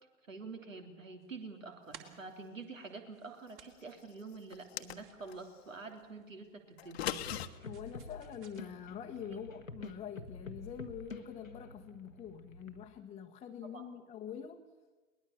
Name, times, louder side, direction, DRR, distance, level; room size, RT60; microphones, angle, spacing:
voice 1, 0.3-7.1 13.7-13.8, right 4 dB, 75° right, 4 dB, 3.4 m, -47 dB
sound 1, 1.2-8.6, right 7 dB, 30° right, 2.6 m, -60 dB
sound 2, 4.5-5.4 6.8-7.5, left 11 dB, 55° left, 1.2 m, -38 dB
sound 3, 7.2-12.9, left 3 dB, 90° left, 1.4 m, -49 dB
voice 2, 7.6-14.6, left 8 dB, 15° left, 2 dB, 1.0 m, -45 dB
22.0 x 20.5 x 6.9 m, 1.4 s
figure-of-eight pair, 100°, 39 cm